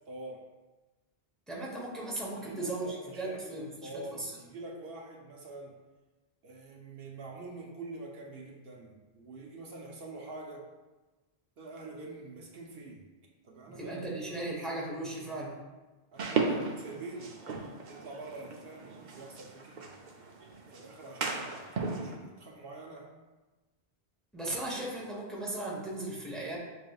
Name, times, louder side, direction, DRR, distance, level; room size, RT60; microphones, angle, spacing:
voice 1, 0.1-0.4 2.3-5.7 6.4-10.7 11.6-13.1 13.4-14.5 16.1-17.4 17.9-20.0 20.7-23.1, right 2 dB, 70° right, -1 dB, 0.9 m, -45 dB
voice 2, 1.5-4.3 13.7-15.6 24.3-26.6, right 2 dB, ahead, -4 dB, 0.7 m, -37 dB
sound 1, 16.2-22.2, right 4 dB, 55° right, 0.6 m, -36 dB
6.5 x 3.4 x 2.3 m, 1.2 s
omnidirectional pair, 1.0 m